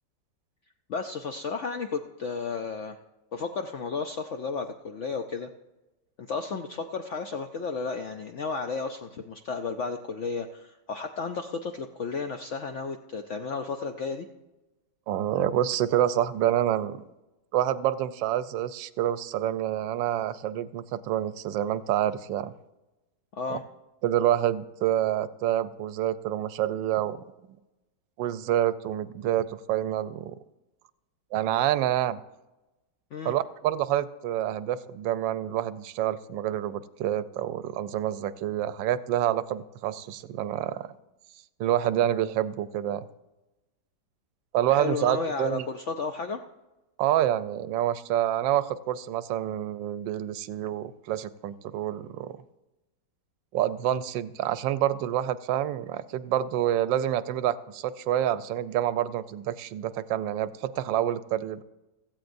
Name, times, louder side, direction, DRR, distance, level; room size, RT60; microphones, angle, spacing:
voice 1, 0.9-3.0 3.3-5.5 6.2-14.3 23.3-23.6 33.1-33.3 44.7-46.4, left 4 dB, 70° left, 6 dB, 0.7 m, -33 dB
voice 2, 15.1-17.0 17.5-22.5 23.5-23.6 24.0-27.6 28.2-30.3 31.3-32.2 33.2-40.9 41.6-43.0 44.5-45.6 47.0-52.4 53.5-61.6, right 12 dB, 85° right, 15 dB, 1.3 m, -27 dB
16.5 x 14.0 x 2.6 m, 1.0 s
omnidirectional pair, 2.0 m